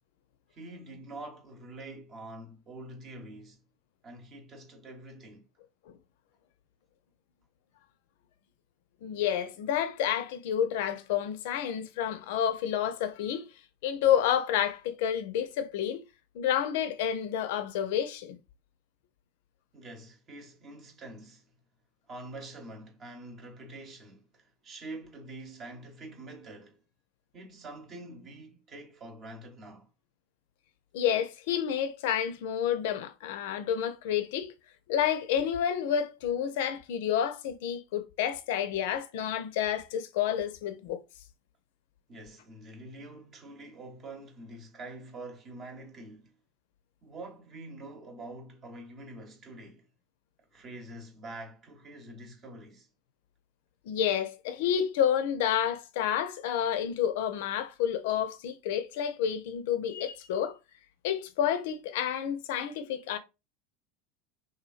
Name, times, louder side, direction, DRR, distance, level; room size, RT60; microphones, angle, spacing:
voice 1, 0.5-3.6 4.0-5.5 19.7-21.4 22.1-26.8 27.3-29.9 42.1-46.3 47.0-49.9 50.5-52.9, right 2 dB, 40° right, 0.9 m, -46 dB
voice 2, 9.0-13.5 13.8-16.1 16.3-18.4 30.9-34.5 34.9-41.0 53.9-60.6 61.0-63.2, left 9 dB, 65° left, 0.4 m, -29 dB
2.7 x 2.5 x 2.4 m
hypercardioid pair, 80°, 0 cm